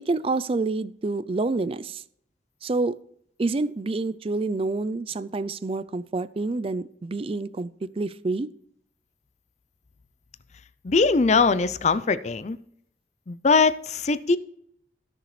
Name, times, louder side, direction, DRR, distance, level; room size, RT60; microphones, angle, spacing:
voice 1, 0.1-2.0 2.6-3.0 3.4-7.7 7.9-8.5, right 3 dB, 30° right, 15 dB, 0.4 m, -27 dB
voice 2, 10.8-12.6 13.3-14.4, left 4 dB, 40° left, 14 dB, 0.5 m, -21 dB
17.5 x 6.6 x 3.2 m, 0.69 s
head